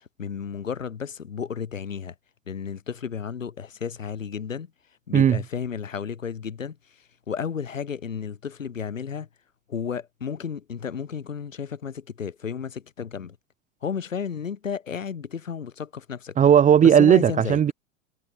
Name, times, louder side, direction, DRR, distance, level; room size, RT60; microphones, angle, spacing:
voice 1, 0.0-2.1 2.5-4.7 5.1-6.8 7.3-9.3 9.7-13.4 13.8-16.4 16.8-17.6, left 7 dB, 90° left, 5.1 m, -32 dB
voice 2, 16.4-17.7, right 8 dB, 20° right, 0.8 m, -16 dB
hypercardioid pair, 100°, 38 cm